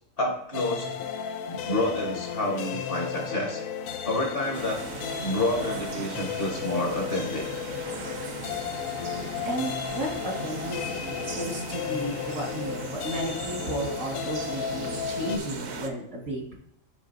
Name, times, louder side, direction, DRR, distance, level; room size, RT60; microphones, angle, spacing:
voice 1, 0.2-0.9 1.5-3.6 4.0-4.8 5.2-7.4, left 1 dB, 45° left, 0 dB, 1.4 m, -29 dB
sound 1, 0.5-15.4, left 8 dB, 85° left, 1.0 m, -34 dB
sound 2, 4.5-15.9, right 5 dB, 60° right, 0.9 m, -38 dB
voice 2, 9.4-16.5, right 1 dB, 90° right, -2 dB, 2.3 m, -33 dB
11.0 x 3.8 x 2.6 m, 0.74 s
omnidirectional pair, 1.4 m